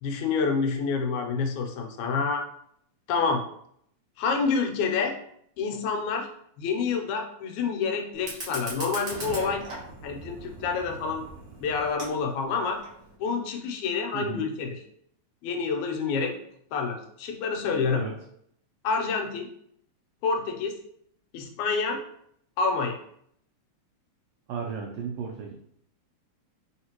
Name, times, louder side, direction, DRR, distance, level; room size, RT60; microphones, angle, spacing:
voice 1, 0.0-2.4 3.1-3.4 4.2-5.2 5.6-6.3 6.6-9.6 10.0-11.2 11.6-12.8 13.2-14.8 15.4-16.4 16.7-18.0 18.8-19.5 20.2-20.8 21.3-22.0 22.6-23.0, left 5 dB, 80° left, 3 dB, 2.0 m, -28 dB
Fire, 8.1-13.1, right 2 dB, 55° right, 0.9 m, -40 dB
voice 2, 24.5-25.5, right 5 dB, 85° right, -1 dB, 1.3 m, -34 dB
3.9 x 3.6 x 2.9 m, 0.69 s
omnidirectional pair, 3.4 m